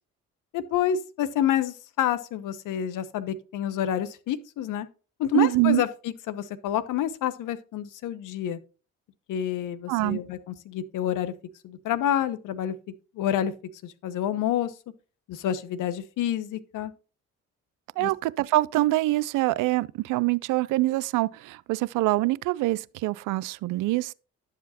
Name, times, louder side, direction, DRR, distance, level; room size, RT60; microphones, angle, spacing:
voice 1, 0.5-4.9 5.2-5.9 6.3-8.6 9.3-11.3 11.6-12.7 13.1-13.5 13.8-14.7 15.3-16.9 18.0-18.1, left 10 dB, 65° left, 0.9 m, -28 dB
voice 2, 5.3-5.8 9.9-10.2 18.0-24.1, right 18 dB, 65° right, 0.5 m, -25 dB
11.0 x 7.4 x 2.8 m
hypercardioid pair, 50°, 33 cm